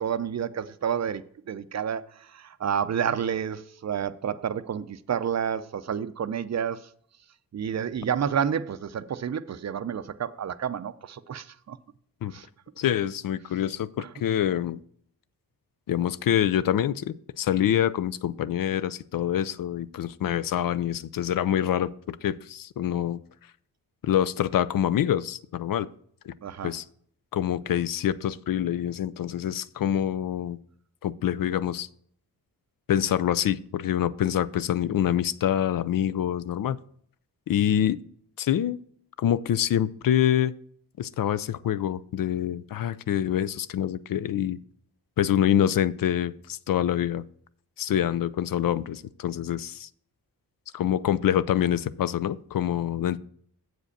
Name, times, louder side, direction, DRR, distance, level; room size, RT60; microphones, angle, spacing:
voice 1, 0.0-6.9 7.5-11.8 12.3-12.5 14.0-14.1 26.4-26.7, right 8 dB, 45° right, 0.5 m, -30 dB
voice 2, 12.8-14.8 15.9-23.2 24.0-25.9 26.3-26.4 26.6-26.8 27.3-30.6 31.0-31.9 32.9-36.8 37.5-38.0 38.4-38.8 39.2-40.6 41.0-44.6 45.2-47.2 47.8-49.9 50.7-53.2, left 10 dB, 65° left, 0.5 m, -26 dB
7.7 x 5.0 x 6.5 m
cardioid pair, 95°, 38 cm